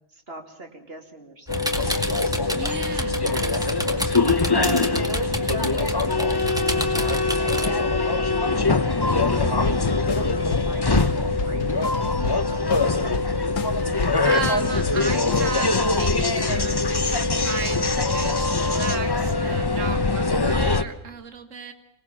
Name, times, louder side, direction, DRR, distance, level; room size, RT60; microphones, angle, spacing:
voice 1, 0.1-2.1 3.2-7.8 8.8-13.0, right 2 dB, 45° right, 4 dB, 2.9 m, -39 dB
sound 1, 1.5-20.8, left 3 dB, 20° left, 0.7 m, -23 dB
sound 2, 1.5-7.7, right 1 dB, 5° right, 2.0 m, -30 dB
voice 2, 2.6-4.2 14.2-21.7, right 5 dB, 65° right, 8 dB, 2.0 m, -34 dB
sound 3, 9.5-15.4, left 5 dB, 70° left, 1.5 m, -33 dB
25.5 x 19.0 x 7.3 m, 0.83 s
omnidirectional pair, 1.4 m